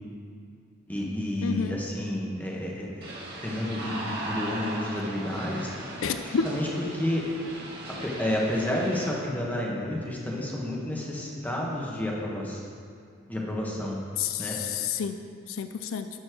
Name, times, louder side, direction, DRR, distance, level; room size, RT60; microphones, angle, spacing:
voice 1, 0.9-3.1 3.4-5.7 6.2-7.2 8.0-12.6 13.3-14.0 14.4-14.6, left 1 dB, 10° left, -3 dB, 1.4 m, -30 dB
voice 2, 1.4-1.8 6.0-6.4 14.2-15.2 15.5-16.1, left 6 dB, 80° left, 8 dB, 0.4 m, -29 dB
sound 1, 3.0-9.1, right 1 dB, 55° right, 1.9 m, -38 dB
11.5 x 4.3 x 6.2 m, 2.3 s
head